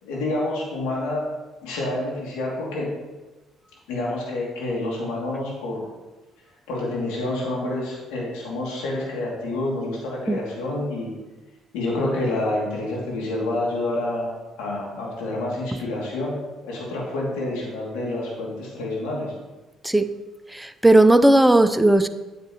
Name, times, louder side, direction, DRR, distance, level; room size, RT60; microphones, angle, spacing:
voice 1, 0.0-1.3 1.6-3.0 3.9-5.9 6.7-11.1 11.7-14.3 14.6-19.3, left 2 dB, 80° left, -4 dB, 2.6 m, -28 dB
voice 2, 20.5-22.1, right 1 dB, 5° right, 10 dB, 0.6 m, -16 dB
9.3 x 8.6 x 3.1 m, 1.2 s
supercardioid pair, 60°, 0 cm